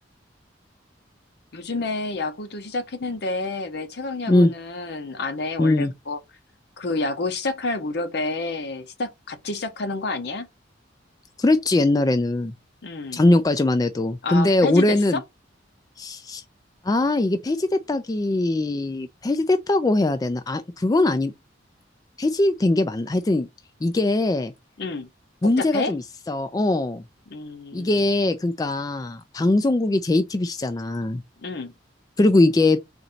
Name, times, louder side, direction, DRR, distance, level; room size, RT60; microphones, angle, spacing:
voice 1, 1.5-6.2 6.8-10.5 12.8-13.2 14.2-15.2 24.8-25.1 25.4-25.9 27.3-27.9 31.4-31.7, left 3 dB, 60° left, 0.7 m, -29 dB
voice 2, 5.6-5.9 11.4-12.5 13.1-15.2 16.0-16.4 16.8-21.3 22.2-23.5 23.8-24.5 25.4-27.0 27.7-31.2 32.2-32.8, left 2 dB, 20° left, 0.3 m, -21 dB
3.9 x 2.6 x 4.3 m
head